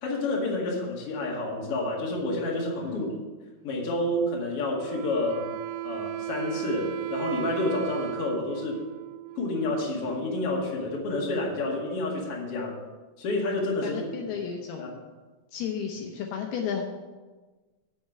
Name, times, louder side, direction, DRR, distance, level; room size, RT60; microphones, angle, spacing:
voice 1, 0.0-3.1 3.6-5.4 5.8-8.8 9.4-12.7 13.2-14.3 14.8-14.9, left 2 dB, 45° left, -2 dB, 2.2 m, -29 dB
Wind instrument woodwind instrument, 4.7-10.2, right 13 dB, 80° right, 2.5 m, -36 dB
voice 2, 13.8-15.0 15.5-16.8, left 7 dB, 75° left, 2 dB, 2.6 m, -33 dB
7.9 x 6.5 x 7.3 m, 1.3 s
omnidirectional pair, 4.9 m